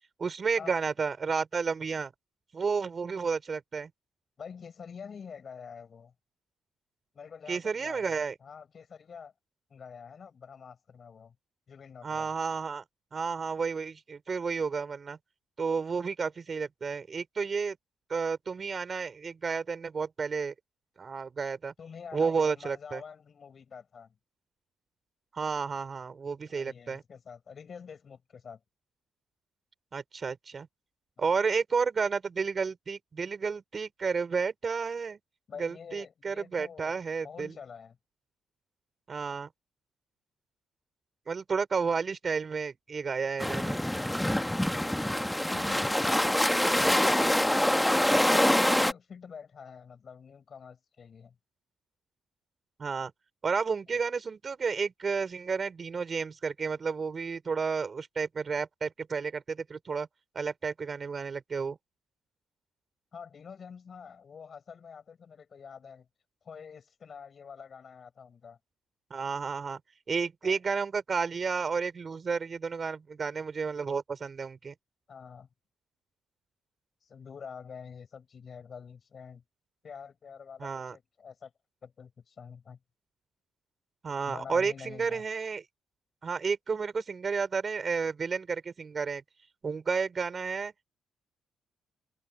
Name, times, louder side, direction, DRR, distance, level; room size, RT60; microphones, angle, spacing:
voice 1, 0.2-2.1 2.5-3.9 7.5-8.3 12.0-12.8 13.1-15.2 15.6-17.8 18.1-20.5 21.0-21.7 22.1-23.0 25.3-27.0 29.9-30.7 31.2-35.2 35.6-37.6 39.1-39.5 41.3-43.8 52.8-53.1 53.4-60.1 60.4-61.8 69.1-69.8 70.1-74.7 80.6-81.0 84.0-85.6 86.2-89.2 89.6-90.8, right 5 dB, 40° right, 5.3 m, -31 dB
voice 2, 4.4-6.1 7.1-9.3 9.7-11.3 11.7-12.3 21.8-24.2 26.5-28.6 35.5-37.0 37.2-38.0 45.5-48.0 48.3-51.3 63.1-66.1 66.4-68.6 70.4-70.6 75.1-75.5 77.0-79.4 79.8-81.5 81.8-82.8 84.2-85.2, left 6 dB, 45° left, 6.4 m, -47 dB
sound 1, 43.4-48.9, left 1 dB, 5° left, 1.3 m, -25 dB
cardioid pair, 90°, 0 cm